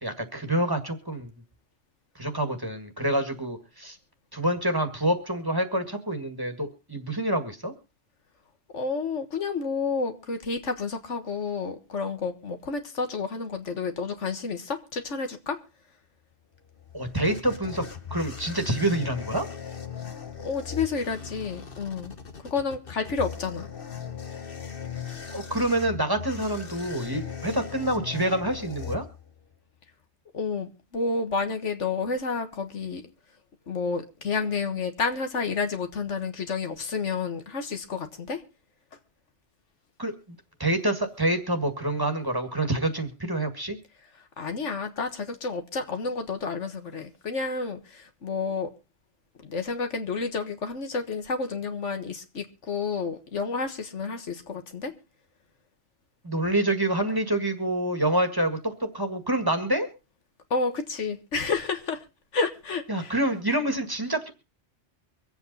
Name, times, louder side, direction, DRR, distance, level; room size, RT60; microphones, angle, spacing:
voice 1, 0.0-1.3 2.2-4.0 4.3-7.7 16.9-19.5 25.3-29.1 40.0-43.8 56.2-59.9 62.9-64.3, right 1 dB, 20° right, 1.8 m, -27 dB
voice 2, 8.7-15.6 20.4-22.1 22.5-23.7 30.3-33.0 33.7-38.4 44.4-48.7 49.4-54.9 60.5-62.1 62.3-63.1, left 4 dB, 90° left, 1.8 m, -30 dB
sound 1, 16.5-29.5, left 8 dB, 50° left, 1.5 m, -38 dB
24.5 x 8.2 x 4.0 m
omnidirectional pair, 1.2 m